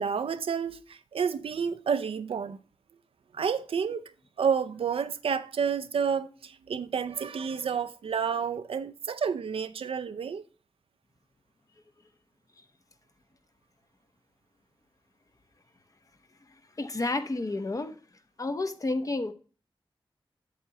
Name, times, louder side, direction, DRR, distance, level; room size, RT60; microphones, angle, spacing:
voice 1, 0.0-2.6 3.3-4.0 4.4-10.4, right 6 dB, 90° right, 0.5 m, -30 dB
voice 2, 16.8-17.9 18.4-19.3, left 2 dB, 40° left, 0.8 m, -30 dB
7.9 x 7.7 x 2.8 m
wide cardioid pair, 80°, 9 cm